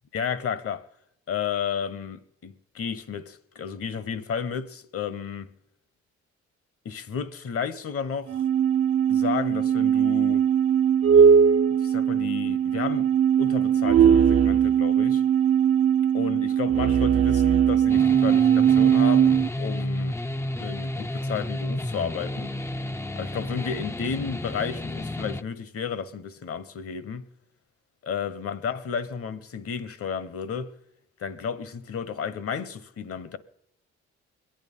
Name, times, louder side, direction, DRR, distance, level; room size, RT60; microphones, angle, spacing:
voice 1, 0.1-0.9 1.3-5.5 6.8-8.4 9.1-10.4 11.8-13.1 13.4-15.2 16.1-20.2 20.6-22.5 23.1-27.3 28.0-30.7 31.2-33.4, left 6 dB, 50° left, 1.1 m, -32 dB
sound 1, 8.3-19.5, right 8 dB, 55° right, 0.7 m, -20 dB
Heavy Guitar Theme, 17.9-25.4, left 1 dB, 10° left, 0.5 m, -31 dB
22.5 x 9.0 x 5.5 m
supercardioid pair, 60°, 29 cm